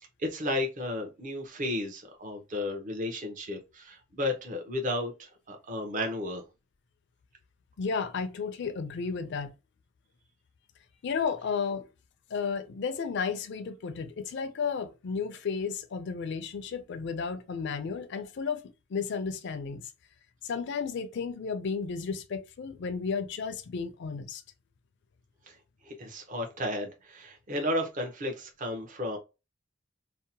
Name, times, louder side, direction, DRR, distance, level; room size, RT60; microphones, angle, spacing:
voice 1, 0.2-6.4 25.5-25.6 25.8-29.2, left 1 dB, 40° right, 0.6 m, -33 dB
voice 2, 7.8-9.5 11.0-11.9 12.3-18.6 18.9-19.9 20.4-24.4, left 5 dB, 60° left, 0.4 m, -33 dB
2.7 x 2.0 x 2.7 m
head